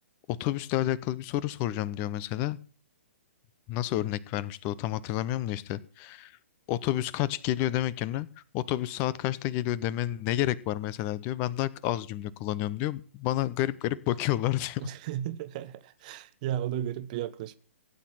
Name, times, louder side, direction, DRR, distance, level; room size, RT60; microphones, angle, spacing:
voice 1, 0.3-2.6 3.7-6.4 6.7-14.9, left 14 dB, 30° left, 0.8 m, -30 dB
voice 2, 14.8-17.6, right 11 dB, 35° right, 1.1 m, -34 dB
16.5 x 9.2 x 7.4 m
figure-of-eight pair, 120°, 7 cm